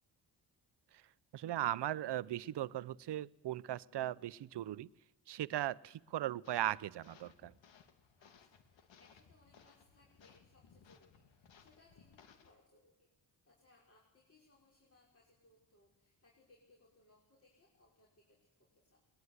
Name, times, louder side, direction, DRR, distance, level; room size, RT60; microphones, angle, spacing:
voice 1, 1.3-4.9 5.3-7.5, right 13 dB, 65° right, 20 dB, 0.8 m, -38 dB
sound 1, 6.4-12.5, left 6 dB, 85° left, 2.5 m, -64 dB
voice 2, 8.2-13.1 13.4-18.4 18.7-19.0, left 2 dB, 30° left, -3 dB, 5.8 m, -69 dB
21.5 x 21.0 x 9.6 m, 0.93 s
cardioid pair, 95°, 44 cm